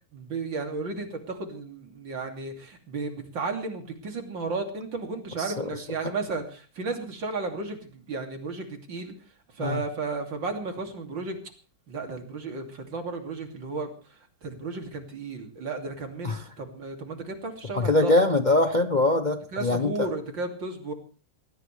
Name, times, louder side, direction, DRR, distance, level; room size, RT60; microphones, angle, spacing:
voice 1, 0.1-9.1 9.5-11.4 11.9-18.1 19.5-20.9, right 3 dB, 80° right, 4 dB, 3.4 m, -34 dB
voice 2, 17.8-19.9, left 2 dB, 35° left, 7 dB, 0.9 m, -22 dB
20.0 x 19.5 x 3.3 m, 0.38 s
omnidirectional pair, 2.0 m